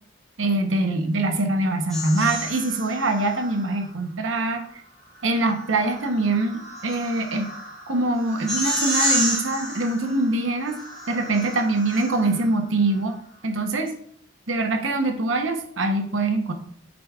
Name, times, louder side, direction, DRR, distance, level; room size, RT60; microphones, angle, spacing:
voice 1, 0.4-4.6 5.2-7.5 7.9-10.8 11.1-13.1 13.4-13.9 14.5-16.5, right 2 dB, 85° right, 5 dB, 0.9 m, -23 dB
sound 1, 1.9-3.9 5.3-12.5, equal, ahead, 2.7 m, -31 dB
8.6 x 5.1 x 2.4 m, 0.65 s
head